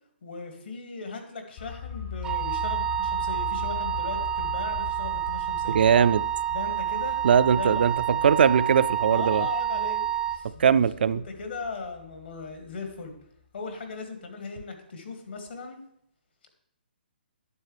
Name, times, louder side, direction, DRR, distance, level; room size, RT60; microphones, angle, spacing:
voice 1, 0.2-5.8 6.5-7.2 7.6-8.3 9.1-13.1 13.5-15.8, left 4 dB, 75° left, 2.1 m, -38 dB
sound 1, 1.6-12.9 13.2-13.3, left 7 dB, 35° left, 0.7 m, -40 dB
Wind instrument woodwind instrument, 2.2-10.4, right 10 dB, 10° right, 0.5 m, -28 dB
voice 2, 5.7-6.2 7.2-7.9 8.2-9.5 10.6-11.2, right 7 dB, 65° right, 0.3 m, -20 dB
9.6 x 7.1 x 3.3 m
hypercardioid pair, 155°, 6 cm